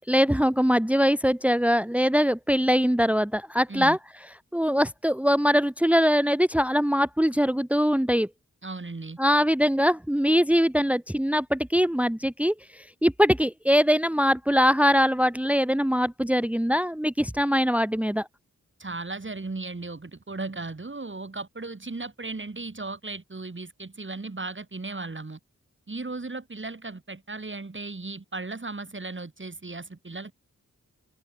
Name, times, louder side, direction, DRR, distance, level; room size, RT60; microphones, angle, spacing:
voice 1, 0.1-4.0 4.5-8.3 9.2-18.3, equal, 5° right, 1.4 m, -22 dB
voice 2, 8.6-9.2 18.8-25.4 25.9-30.3, right 3 dB, 40° right, 3.0 m, -36 dB
cardioid pair, 55°, 31 cm